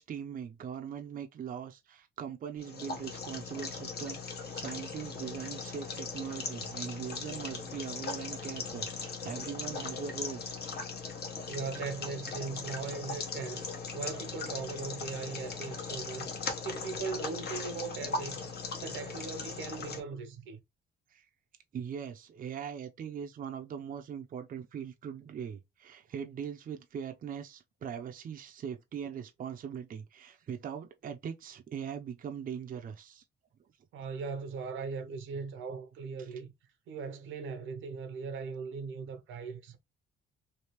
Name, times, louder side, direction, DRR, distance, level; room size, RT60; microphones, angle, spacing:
voice 1, 0.0-10.4 11.5-11.6 21.1-21.3 21.7-33.2 36.2-36.3, right 8 dB, 45° right, 0.5 m, -41 dB
sound 1, 2.6-20.0, left 4 dB, 55° left, 1.1 m, -39 dB
voice 2, 11.5-13.7 13.9-16.3 16.6-18.5 18.8-20.6 33.9-36.5 36.9-39.8, right 5 dB, 80° right, 0.8 m, -39 dB
3.3 x 2.4 x 2.9 m
cardioid pair, 90°, 20 cm